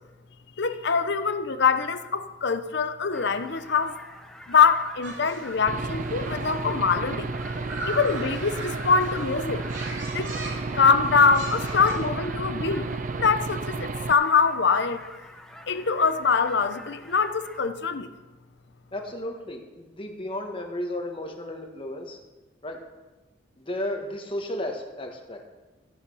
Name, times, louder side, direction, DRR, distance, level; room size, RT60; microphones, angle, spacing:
voice 1, 0.6-3.9 4.5-7.3 7.9-9.6 10.1-10.3 10.7-15.0 15.7-18.1, left 5 dB, 60° left, 10 dB, 0.8 m, -23 dB
sound 1, 3.1-17.6, left 1 dB, 5° left, 0.9 m, -46 dB
sound 2, 5.0-12.0, right 2 dB, 80° right, 2.8 m, -39 dB
Aircraft / Engine, 5.7-14.1, right 3 dB, 40° right, 0.4 m, -32 dB
voice 2, 18.9-22.2 22.6-22.8 23.6-25.4, left 1 dB, 30° left, 3 dB, 1.5 m, -33 dB
14.0 x 8.6 x 5.6 m, 1.1 s
head